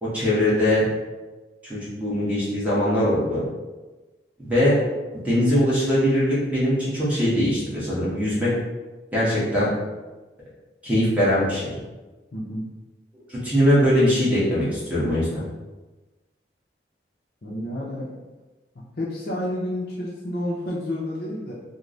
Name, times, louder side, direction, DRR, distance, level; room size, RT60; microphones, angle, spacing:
voice 1, 0.0-0.9 1.6-3.4 4.4-4.8 5.2-8.5 9.1-9.7 10.8-11.7 13.3-15.4, equal, 10° right, -9 dB, 1.1 m, -21 dB
voice 2, 12.3-12.7 17.4-18.1 19.0-21.5, left 1 dB, 55° left, -5 dB, 0.5 m, -30 dB
3.2 x 2.1 x 3.8 m, 1.2 s
head